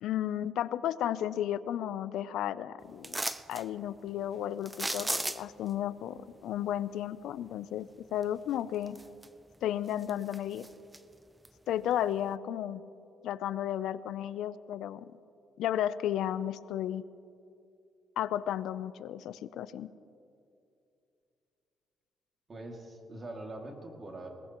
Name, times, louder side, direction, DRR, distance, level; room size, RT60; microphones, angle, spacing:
voice 1, 0.0-3.2 3.5-9.0 9.6-10.6 11.7-12.8 13.2-15.0 15.6-17.0 18.2-19.9, left 11 dB, 85° left, 16 dB, 0.4 m, -33 dB
sound 1, 3.0-3.6 4.7-5.7 8.2-8.3 8.8-9.5 9.9-11.0 11.4-11.5, right 2 dB, 10° right, 0.5 m, -35 dB
voice 2, 22.5-24.3, right 2 dB, 35° right, 1 dB, 2.3 m, -43 dB
21.5 x 18.5 x 3.0 m, 2.6 s
cardioid pair, 100°, 0 cm